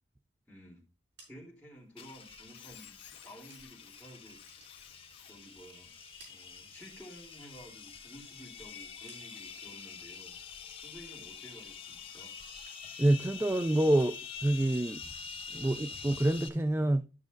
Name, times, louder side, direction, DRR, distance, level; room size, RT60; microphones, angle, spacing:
voice 1, 0.5-0.8 1.3-3.0 3.2-4.4 5.2-5.9 6.3-10.4 10.8-12.3, equal, 5° left, 3.4 m, -52 dB
sound 1, 0.9-4.0 4.3-5.6 5.9-7.2 7.6-9.7 10.1-10.6 10.9-12.2 12.5-13.1 13.3-16.2, right 2 dB, 70° right, 4.8 m, -63 dB
Squeak, 2.0-8.0, left 5 dB, 70° left, 1.5 m, -58 dB
sound 2, 2.0-16.5, left 5 dB, 30° left, 0.9 m, -46 dB
voice 2, 13.0-15.0 15.5-17.0, right 1 dB, 15° right, 0.3 m, -27 dB
12.5 x 6.1 x 2.6 m
head